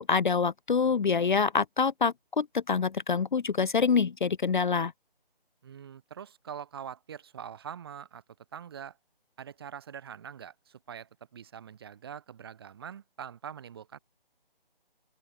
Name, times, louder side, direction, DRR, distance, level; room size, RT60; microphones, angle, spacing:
voice 1, 0.0-4.9, left 5 dB, 55° left, 0.5 m, -26 dB
voice 2, 5.6-8.2 8.5-9.0 9.4-14.0, right 8 dB, 25° right, 1.5 m, -44 dB
open air
figure-of-eight pair, 155°, 29 cm